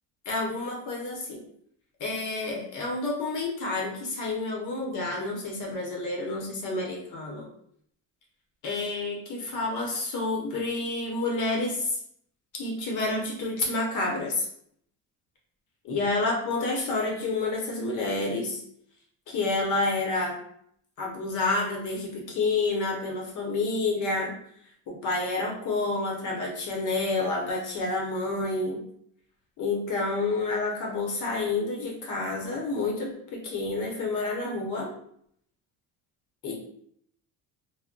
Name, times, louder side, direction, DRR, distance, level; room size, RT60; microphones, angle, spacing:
voice 1, 0.3-1.4 2.0-7.5 8.6-12.0 12.6-14.5 15.8-18.6 19.3-20.4 21.0-24.4 24.9-28.8 29.6-34.9 36.4-36.5, left 3 dB, 60° left, -1 dB, 0.8 m, -29 dB
2.2 x 2.0 x 3.7 m, 0.67 s
cardioid pair, 130°, 35 cm